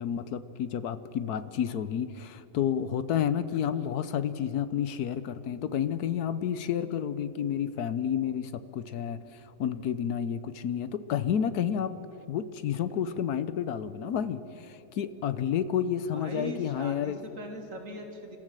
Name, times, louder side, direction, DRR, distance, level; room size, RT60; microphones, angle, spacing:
voice 1, 0.0-11.9 12.3-17.2, left 9 dB, 75° left, 13 dB, 1.3 m, -30 dB
voice 2, 16.1-18.4, right 1 dB, 55° right, 3 dB, 2.6 m, -40 dB
27.5 x 14.0 x 7.7 m, 2.9 s
omnidirectional pair, 1.7 m